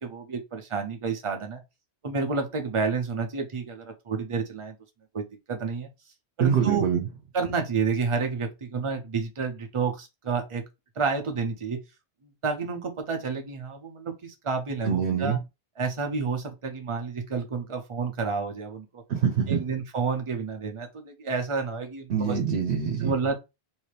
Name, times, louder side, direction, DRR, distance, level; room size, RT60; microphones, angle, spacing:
voice 1, 0.0-1.6 2.0-4.8 5.1-5.9 6.4-6.9 7.3-10.6 11.0-11.8 12.2-15.4 15.8-19.0 19.5-22.4 23.0-23.4, right 5 dB, 35° right, 0.7 m, -30 dB
voice 2, 6.4-7.1 14.8-15.4 19.1-19.6 22.1-23.1, right 7 dB, 85° right, 1.0 m, -25 dB
3.2 x 2.7 x 3.3 m
omnidirectional pair, 1.1 m